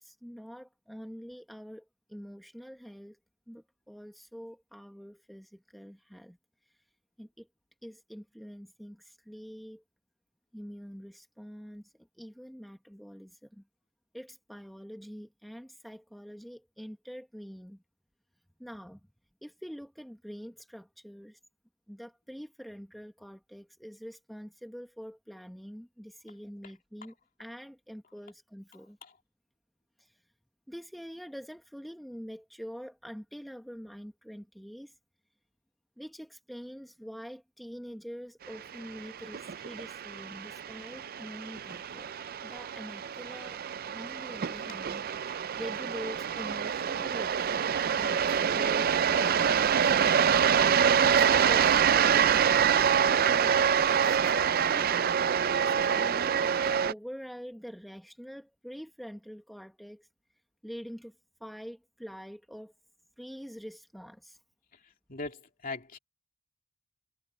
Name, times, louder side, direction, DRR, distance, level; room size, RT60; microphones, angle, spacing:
voice 1, 0.0-3.2 3.5-6.4 7.2-7.5 7.8-9.8 10.5-13.6 14.1-17.8 18.6-19.0 19.4-21.4 21.9-29.0 30.0-30.1 30.7-34.9 36.0-42.1 42.4-43.6 43.9-47.7 48.0-50.2 51.0-52.4 53.1-55.0 55.7-60.1 60.6-61.1 61.4-62.7 63.2-64.4, equal, ahead, 1.3 m, -45 dB
sound 1, 38.6-56.9, right 7 dB, 45° right, 0.4 m, -26 dB
voice 2, 64.7-66.0, left 3 dB, 40° left, 2.7 m, -41 dB
head